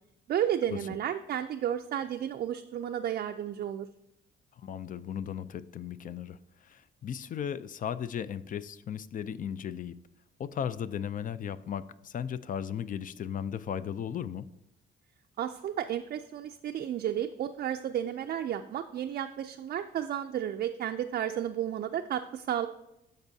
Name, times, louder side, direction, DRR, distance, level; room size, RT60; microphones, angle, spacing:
voice 1, 0.3-3.9 15.4-22.7, right 10 dB, 50° right, 6 dB, 0.4 m, -32 dB
voice 2, 4.6-6.4 6.6-10.0 10.4-14.4, left 8 dB, 45° left, 15 dB, 0.4 m, -36 dB
13.0 x 5.3 x 2.7 m, 0.87 s
cardioid pair, 90°, 20 cm